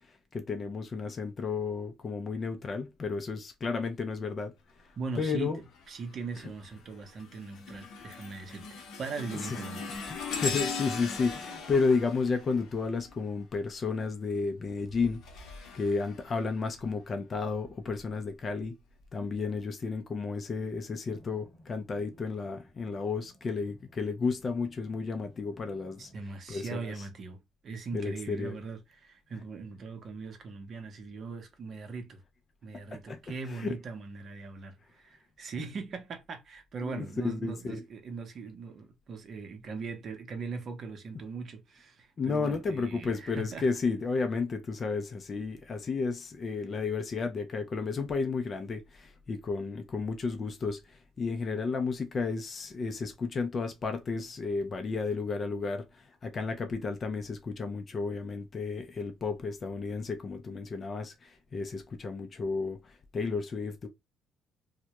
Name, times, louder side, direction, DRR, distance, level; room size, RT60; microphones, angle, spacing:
voice 1, 0.3-4.5 5.2-5.6 9.3-9.6 10.1-15.2 15.7-18.8 19.1-26.1 26.5-26.9 27.9-28.6 32.7-33.2 33.5-33.8 36.8-37.8 42.2-63.9, left 4 dB, 40° left, 0.4 m, -32 dB
voice 2, 5.0-5.5 5.9-9.9 26.0-32.2 32.6-43.6, right 4 dB, 50° right, 0.6 m, -40 dB
sound 1, 5.7-6.1 6.6-13.4 14.7-16.9 17.5-17.7 18.6-18.7, left 4 dB, 70° left, 0.7 m, -40 dB
sound 2, 21.0-26.2, left 1 dB, 5° left, 1.1 m, -59 dB
2.1 x 2.1 x 2.8 m
cardioid pair, 90°, 0 cm